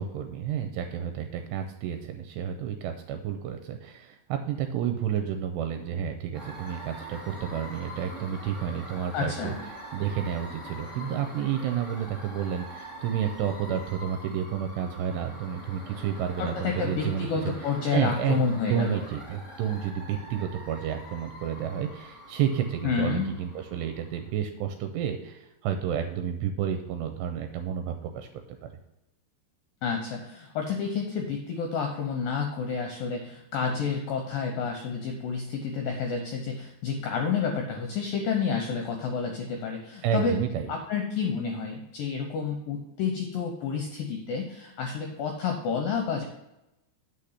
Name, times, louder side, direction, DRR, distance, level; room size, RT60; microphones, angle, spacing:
voice 1, 0.0-9.5 9.9-18.4 18.7-28.7 40.0-40.7, right 9 dB, 85° right, 6 dB, 2.7 m, -30 dB
sound 1, 6.3-24.3, equal, 15° left, 1.0 m, -44 dB
voice 2, 9.1-9.6 16.4-19.0 22.8-23.3 29.8-40.4 40.7-46.3, left 5 dB, 75° left, 2 dB, 2.1 m, -30 dB
8.3 x 5.1 x 5.7 m, 0.91 s
omnidirectional pair, 5.2 m